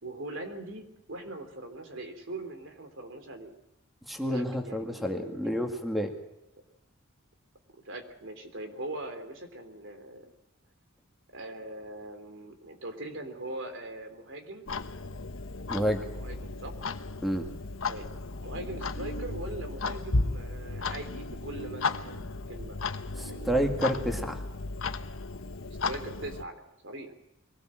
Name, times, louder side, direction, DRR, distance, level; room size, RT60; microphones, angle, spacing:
voice 1, 0.0-3.5 4.3-5.5 6.5-6.6 7.8-10.3 11.3-14.7 16.1-16.7 17.9-22.8 23.2-23.6 25.8-27.1, right 2 dB, 65° right, 7 dB, 3.4 m, -41 dB
voice 2, 4.1-6.1 15.7-16.0 17.2-17.5 23.2-24.4, equal, ahead, 3 dB, 2.1 m, -29 dB
Clock, 14.7-26.4, left 3 dB, 75° left, 1.2 m, -34 dB
23.5 x 18.5 x 7.7 m, 0.89 s
head